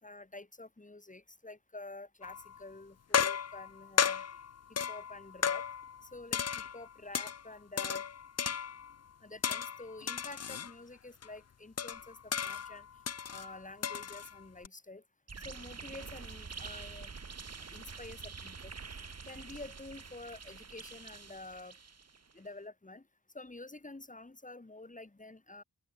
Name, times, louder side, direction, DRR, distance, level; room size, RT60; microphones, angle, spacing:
voice 1, 0.0-4.2 4.7-5.6 6.0-8.0 9.2-12.9 13.3-15.0 15.4-17.1 17.6-18.7 19.2-21.8 22.3-23.1 23.3-25.6, left 2 dB, 20° left, 1.4 m, -49 dB
sound 1, 2.2-2.6 3.1-6.0 6.3-7.4 7.8-8.9 9.4-10.7 11.2-11.3 11.8-14.7, left 7 dB, 40° left, 0.5 m, -34 dB
sound 2, 15.3-22.3, right 5 dB, 40° right, 1.0 m, -47 dB
open air
wide cardioid pair, 95°, 41 cm